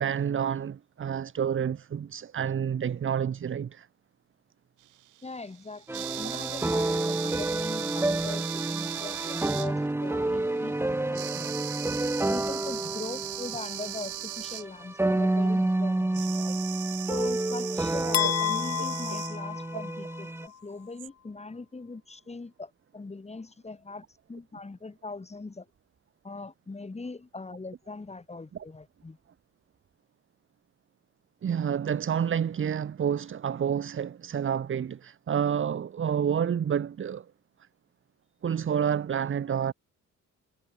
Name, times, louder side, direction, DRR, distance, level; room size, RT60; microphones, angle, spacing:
voice 1, 0.0-3.9 18.2-18.3 31.4-37.3 38.4-39.7, right 8 dB, 40° right, 1.2 m, -29 dB
sound 1, 4.8-10.1 11.1-14.6 16.1-19.4 21.0-21.1, right 15 dB, 80° right, 1.4 m, -38 dB
voice 2, 5.2-11.6 12.2-16.6 17.0-25.7 26.2-29.2, left 3 dB, 20° left, 4.2 m, -41 dB
sound 2, 5.9-20.5, right 2 dB, 10° right, 0.9 m, -29 dB
sound 3, 18.1-20.3, left 11 dB, 55° left, 0.9 m, -30 dB
cardioid pair, 90°, 30 cm